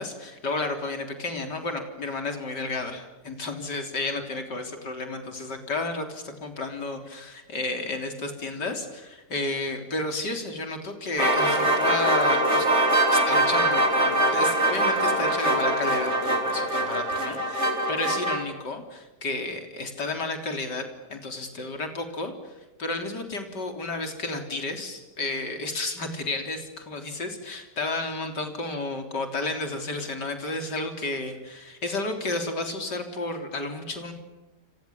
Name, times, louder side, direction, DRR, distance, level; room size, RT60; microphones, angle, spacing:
voice 1, 0.0-12.7 13.1-20.8 21.1-34.1, left 2 dB, 90° left, 5 dB, 4.2 m, -32 dB
sound 1, 11.2-18.4, right 1 dB, 40° right, 4.6 m, -23 dB
29.5 x 27.0 x 7.2 m, 1.1 s
omnidirectional pair, 1.8 m